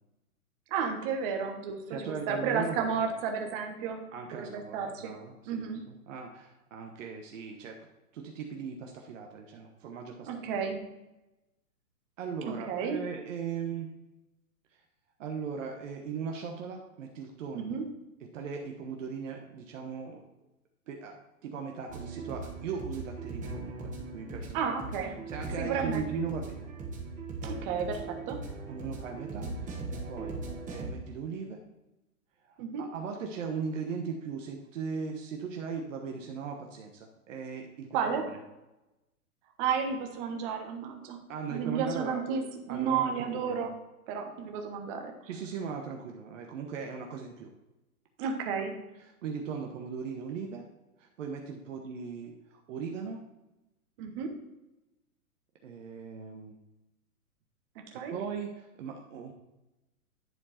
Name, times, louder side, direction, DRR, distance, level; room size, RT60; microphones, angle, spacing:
voice 1, 0.7-4.0 4.3-5.1 5.5-5.8 10.2-10.8 12.5-13.0 17.5-17.9 24.5-25.2 25.6-26.0 27.4-28.4 32.6-32.8 37.9-38.2 39.6-41.2 41.5-43.7 44.1-45.1 48.2-48.7 54.0-54.3 57.9-58.2, right 6 dB, 35° right, 4 dB, 1.4 m, -32 dB
voice 2, 1.9-3.0 4.1-7.8 8.1-10.6 12.2-13.9 15.2-17.8 18.3-20.2 20.9-21.2 21.4-24.7 25.3-26.7 28.7-30.4 30.7-31.6 32.5-37.9 38.1-38.4 41.3-42.2 42.7-43.7 45.2-47.5 49.2-50.7 51.0-53.2 55.6-56.6 58.1-59.3, right 6 dB, 55° right, 2 dB, 1.2 m, -38 dB
sound 1, 21.9-30.9, right 3 dB, 15° right, 1.8 m, -39 dB
11.0 x 4.5 x 4.3 m, 0.98 s
hypercardioid pair, 135°, 45 cm